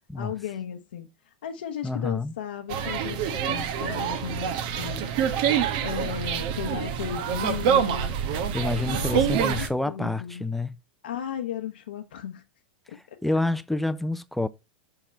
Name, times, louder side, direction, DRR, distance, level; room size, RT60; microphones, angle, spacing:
voice 1, 0.2-5.1 5.8-8.1 8.8-10.5 11.0-12.4 12.9-13.2, left 9 dB, 85° left, 0.8 m, -35 dB
voice 2, 1.8-2.3 8.5-10.7 13.2-14.5, left 2 dB, ahead, 0.5 m, -28 dB
sound 1, 2.7-9.7, right 8 dB, 60° right, 1.1 m, -26 dB
5.9 x 4.8 x 4.4 m
hypercardioid pair, 125°, 5 cm